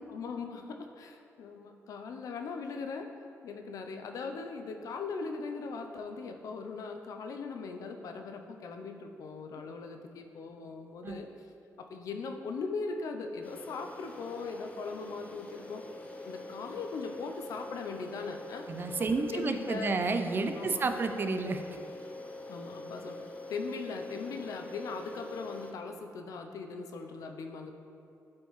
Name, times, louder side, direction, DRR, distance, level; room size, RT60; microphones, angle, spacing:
voice 1, 0.1-3.1 3.4-11.3 11.8-15.8 16.2-18.7 19.0-20.0 20.5-20.8 22.5-23.2 23.5-27.7, left 4 dB, 85° left, 5 dB, 0.5 m, -39 dB
sound 1, 13.4-25.7, left 2 dB, 25° left, 0.8 m, -45 dB
voice 2, 18.7-21.6, right 3 dB, 40° right, 7 dB, 0.4 m, -31 dB
9.4 x 4.5 x 3.1 m, 2.6 s
cardioid pair, 100°, 6 cm